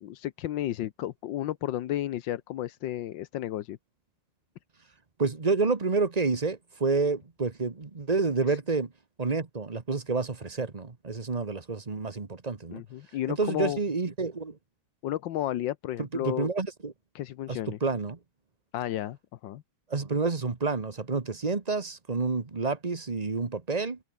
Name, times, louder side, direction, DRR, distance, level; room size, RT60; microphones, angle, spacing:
voice 1, 0.0-3.8 8.5-8.6 12.7-13.8 15.0-16.5 17.1-17.8 18.7-19.2 19.4-19.6, left 12 dB, 75° left, 1.5 m, -32 dB
voice 2, 5.2-8.9 9.2-12.8 13.3-14.6 16.0-16.9 17.5-18.2 19.9-24.0, right 4 dB, 25° right, 1.3 m, -29 dB
omnidirectional pair, 2.1 m